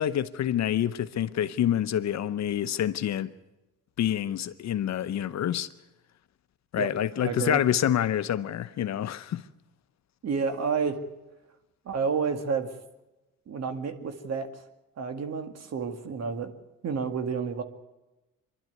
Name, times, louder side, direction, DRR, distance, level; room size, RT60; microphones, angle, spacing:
voice 1, 0.0-3.3 4.0-5.7 6.7-9.4, left 10 dB, 60° left, 0.9 m, -27 dB
voice 2, 7.2-7.6 10.2-11.0 11.9-12.7 13.5-14.6 15.0-16.5 16.8-17.6, right 5 dB, 60° right, 2.1 m, -30 dB
24.5 x 12.0 x 9.4 m
cardioid pair, 90°, 30 cm